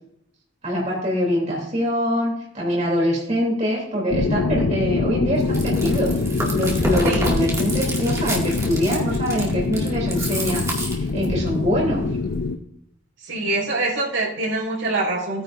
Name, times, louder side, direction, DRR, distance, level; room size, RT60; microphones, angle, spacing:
voice 1, 0.6-12.0, equal, 35° right, -3 dB, 3.0 m, -24 dB
sound 1, 4.1-12.6, left 3 dB, 90° left, 0.6 m, -24 dB
Chewing mastication, 5.4-11.5, right 1 dB, 15° right, 2.2 m, -28 dB
voice 2, 13.2-15.4, right 2 dB, 75° right, -3 dB, 4.8 m, -24 dB
16.5 x 9.7 x 2.6 m, 0.74 s
head